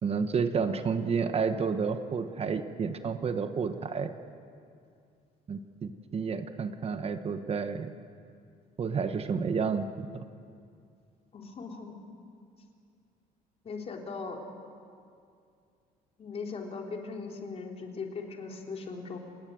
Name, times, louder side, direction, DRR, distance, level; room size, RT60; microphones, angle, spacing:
voice 1, 0.0-4.1 5.5-7.9 8.8-10.2, right 5 dB, 40° right, 9 dB, 1.2 m, -30 dB
voice 2, 11.3-12.0 13.6-14.4 16.2-19.2, left 4 dB, 40° left, 1 dB, 3.7 m, -39 dB
28.5 x 19.5 x 7.9 m, 2.4 s
cardioid pair, 120°, 16 cm